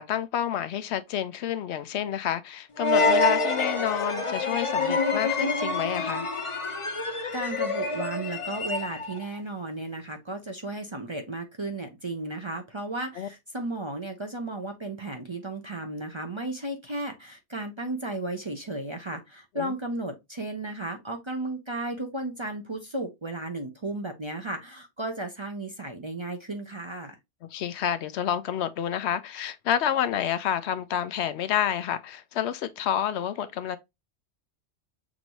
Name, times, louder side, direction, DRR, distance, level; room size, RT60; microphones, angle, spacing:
voice 1, 0.0-6.3 13.2-13.3 19.6-19.7 27.5-33.8, left 10 dB, 75° left, 0.8 m, -29 dB
sound 1, 2.8-9.2, left 3 dB, 35° left, 0.7 m, -27 dB
voice 2, 7.3-27.2, right 2 dB, 30° right, 0.6 m, -34 dB
6.1 x 2.6 x 2.9 m
omnidirectional pair, 1.2 m